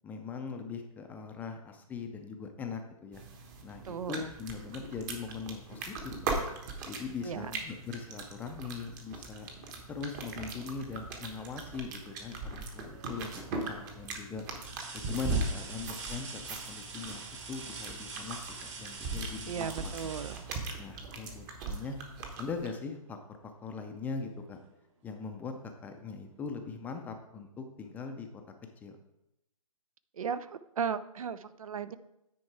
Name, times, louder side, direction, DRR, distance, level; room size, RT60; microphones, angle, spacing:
voice 1, 0.0-3.2 3.6-6.4 6.8-9.5 9.9-14.5 14.9-19.9 20.8-22.0 22.4-24.6 25.0-25.5 25.8-28.3 28.8-29.0, left 5 dB, 10° left, 5 dB, 0.5 m, -41 dB
sound 1, 3.1-22.7, right 3 dB, 35° right, 1.2 m, -40 dB
voice 2, 3.9-4.3 7.2-7.5 19.5-20.4 30.1-32.0, right 7 dB, 70° right, 15 dB, 0.5 m, -36 dB
sound 2, 12.8-13.3 13.9-14.0 14.6-21.3 23.1-23.2 23.7-24.7 26.0-26.1, right 4 dB, 55° right, 1.8 m, -45 dB
9.5 x 4.3 x 4.7 m, 0.87 s
hypercardioid pair, 135°, 18 cm